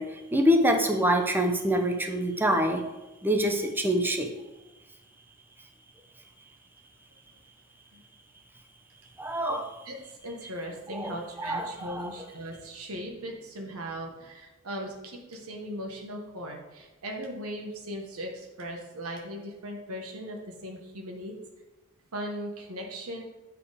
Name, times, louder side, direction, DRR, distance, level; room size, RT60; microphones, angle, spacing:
voice 1, 0.0-2.8 3.2-4.3 9.2-9.7 10.9-12.1, equal, 10° right, 4 dB, 0.7 m, -26 dB
voice 2, 9.9-21.4 22.1-23.2, equal, 85° right, 1 dB, 1.2 m, -38 dB
8.2 x 5.0 x 4.9 m, 1.1 s
head